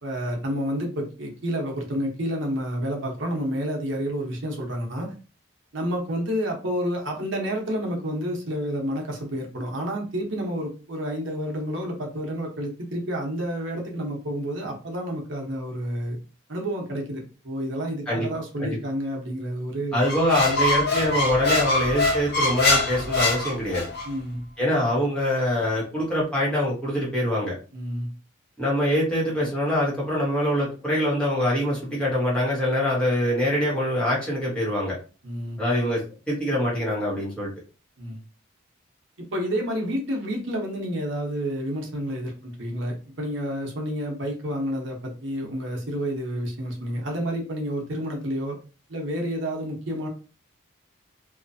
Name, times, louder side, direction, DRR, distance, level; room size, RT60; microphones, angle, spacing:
voice 1, 0.0-5.1 5.7-16.2 16.5-20.1 24.0-24.4 27.7-28.1 35.2-35.6 38.0-38.2 39.2-48.6 48.9-50.1, equal, 65° right, 1 dB, 0.9 m, -29 dB
voice 2, 19.9-23.9 24.6-27.5 28.6-35.0 35.6-37.5, equal, 5° left, -6 dB, 1.0 m, -24 dB
Squeak, 20.0-24.1, left 2 dB, 50° left, 0.9 m, -23 dB
2.9 x 2.4 x 2.6 m, 0.35 s
head